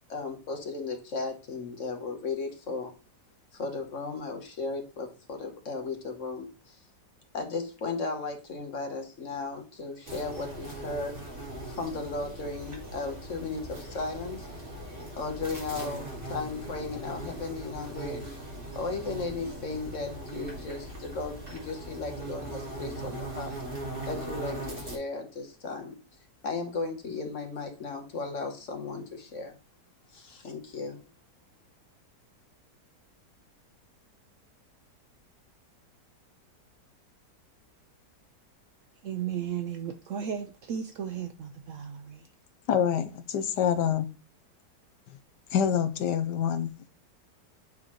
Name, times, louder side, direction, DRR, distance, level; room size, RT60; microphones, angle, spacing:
voice 1, 0.1-2.9 3.5-6.8 7.3-11.1 11.6-14.5 15.2-18.4 18.7-23.5 24.1-26.0 26.4-29.5 30.1-31.0, left 3 dB, 50° left, 1.3 m, -35 dB
sound 1, 10.1-25.0, right 1 dB, 30° right, 2.2 m, -40 dB
voice 2, 39.0-42.3, right 8 dB, 75° right, 0.7 m, -35 dB
voice 3, 42.7-44.1 45.5-46.9, left 8 dB, 80° left, 1.3 m, -26 dB
9.0 x 3.9 x 3.0 m
omnidirectional pair, 1.8 m